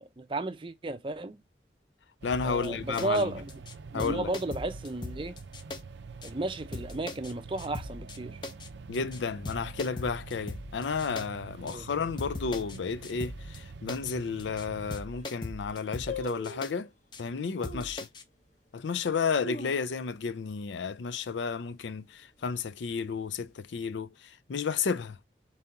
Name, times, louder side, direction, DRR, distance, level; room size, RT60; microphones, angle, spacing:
voice 1, 0.0-1.4 2.4-3.5 3.9-5.4 6.2-8.4 11.6-11.9, right 2 dB, 30° right, 0.5 m, -33 dB
voice 2, 2.2-3.3 3.9-4.3 8.9-16.9 17.2-18.1 18.7-25.2, left 5 dB, 90° left, 0.5 m, -32 dB
sound 1, 2.2-15.1, right 4 dB, 85° right, 0.5 m, -46 dB
sound 2, 2.3-2.7 3.0-3.2 3.5-3.7 4.0-5.8 6.2-6.3 6.7-7.3 7.6-8.2 8.4-8.7 8.9-9.2 9.4-11.3 11.7-11.8 12.2-12.8 13.0-13.6 13.9-14.1 14.4-14.6 14.9-16.7 17.1-17.2 17.6-18.2, left 2 dB, 25° left, 0.5 m, -40 dB
sound 3, 14.1-14.2 14.8-14.9 15.1-15.5 16.1-16.8 17.6-18.0 18.5-18.6 19.1-20.3 20.6-20.7 21.0-21.4 21.8-22.1 22.7-23.5 23.8-23.9, left 2 dB, 45° left, 1.2 m, -41 dB
4.1 x 3.6 x 2.7 m
head